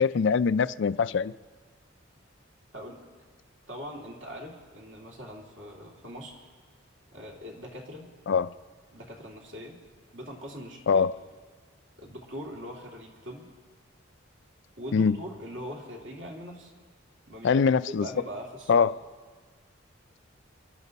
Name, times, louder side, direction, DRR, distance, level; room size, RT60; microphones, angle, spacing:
voice 1, 0.0-1.3 8.3-8.5 10.9-11.1 14.9-15.2 17.4-18.1 18.7-18.9, left 5 dB, 60° left, 16 dB, 0.4 m, -23 dB
voice 2, 2.7-3.0 3.7-6.5 7.1-8.1 8.9-9.8 10.1-11.1 12.0-13.4 14.8-16.7 17.3-18.9, equal, 65° right, -1 dB, 2.7 m, -41 dB
27.5 x 12.0 x 4.1 m, 1.5 s
head